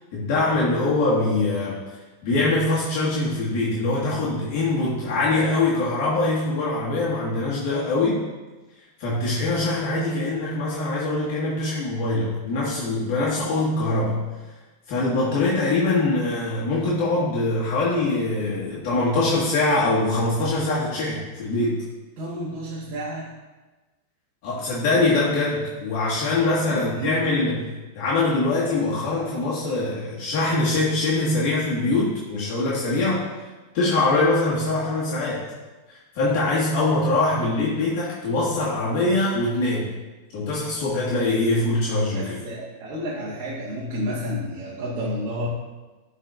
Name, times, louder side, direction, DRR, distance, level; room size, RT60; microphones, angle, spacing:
voice 1, 0.1-1.8 2.2-8.2 9.0-14.2 14.9-21.8 24.4-27.6 28.0-33.2 33.7-35.4 36.2-39.8 40.3-42.4, left 2 dB, 55° left, -7 dB, 1.8 m, -23 dB
voice 2, 22.2-23.3 26.6-27.3 37.3-37.5 42.1-45.5, equal, 50° right, -6 dB, 1.6 m, -31 dB
10.0 x 4.2 x 2.6 m, 1.2 s
hypercardioid pair, 115°, 0 cm